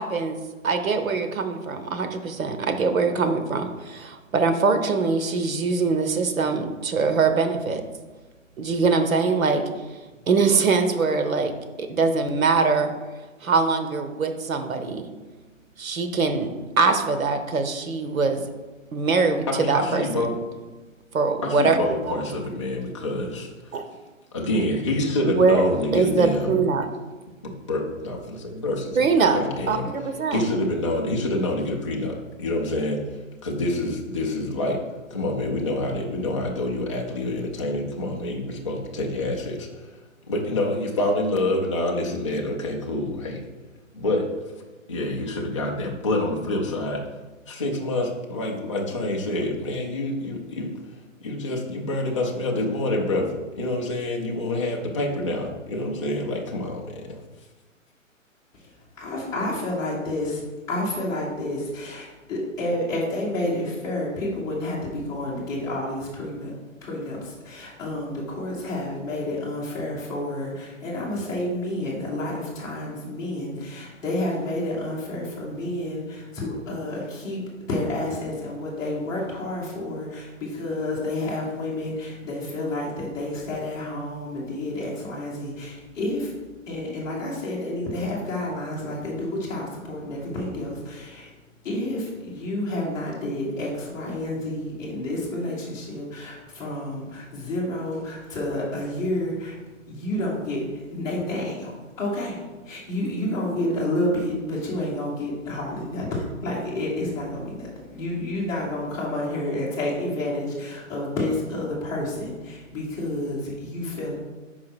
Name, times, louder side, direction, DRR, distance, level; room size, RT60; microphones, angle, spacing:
voice 1, 0.0-7.8 8.6-10.0 10.3-12.9 13.4-15.1 15.8-16.5 16.8-18.5 18.9-20.3 21.1-21.8 23.7-23.8 25.2-25.7 25.9-26.9 29.0-29.4 29.7-30.5, right 4 dB, 90° right, 8 dB, 0.9 m, -23 dB
voice 2, 19.5-20.3 21.4-23.8 24.3-26.6 27.4-29.9 30.3-33.0 33.4-34.8 35.1-39.9 40.3-43.4 43.9-44.3 44.9-47.0 47.5-50.8 51.2-57.2, left 1 dB, 25° left, -1 dB, 0.4 m, -27 dB
voice 3, 59.0-60.4 60.7-66.5 66.8-86.3 86.6-91.3 91.6-99.5 99.9-114.1, left 1 dB, 10° left, -9 dB, 1.3 m, -30 dB
5.7 x 4.7 x 4.3 m, 1.2 s
hypercardioid pair, 155°, 40 cm